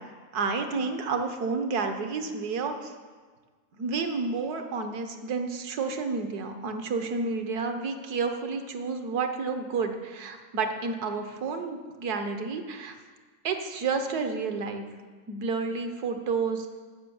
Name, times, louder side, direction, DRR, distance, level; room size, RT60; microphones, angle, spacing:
voice 1, 0.3-2.9 3.8-12.9 13.4-14.9 15.3-16.7, right 4 dB, 75° right, 6 dB, 1.5 m, -30 dB
14.0 x 5.9 x 7.1 m, 1.5 s
omnidirectional pair, 1.7 m